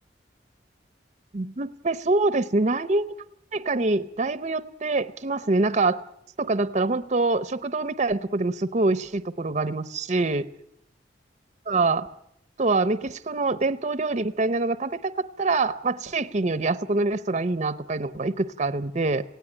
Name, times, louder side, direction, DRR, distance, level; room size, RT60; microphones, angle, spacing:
voice 1, 1.3-3.1 3.5-6.0 6.4-10.5 11.7-12.1 12.6-15.1 15.4-19.2, right 3 dB, 40° right, 14 dB, 0.7 m, -25 dB
18.5 x 17.0 x 10.0 m, 0.75 s
head